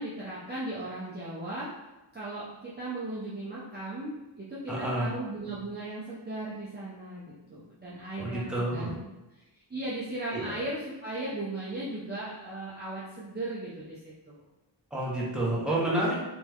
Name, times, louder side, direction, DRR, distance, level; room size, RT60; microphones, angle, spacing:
voice 1, 0.0-1.7 2.1-8.9 9.7-14.4, right 2 dB, 20° right, -8 dB, 0.7 m, -37 dB
voice 2, 4.7-5.1 8.2-8.9 10.3-10.4 14.9-16.3, right 1 dB, ahead, -7 dB, 1.1 m, -29 dB
3.5 x 3.3 x 3.1 m, 1.0 s
wide cardioid pair, 150°, 47 cm